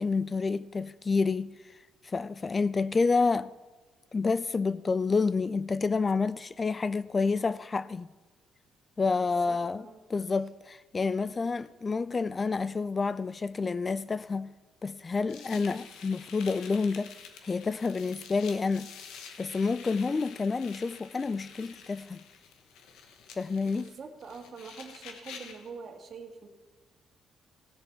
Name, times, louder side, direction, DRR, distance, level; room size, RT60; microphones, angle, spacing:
voice 1, 0.0-1.5 2.0-3.5 4.1-8.1 9.0-14.5 14.8-17.1 17.4-18.9 19.4-22.2 23.4-23.9, left 4 dB, 30° left, 0.3 m, -29 dB
voice 2, 9.2-10.0 15.5-15.8 20.0-20.3 23.6-26.5, right 5 dB, 55° right, 1.7 m, -45 dB
sound 1, 15.3-25.7, left 6 dB, 90° left, 1.0 m, -48 dB
16.0 x 7.0 x 4.5 m
cardioid pair, 90°, 0 cm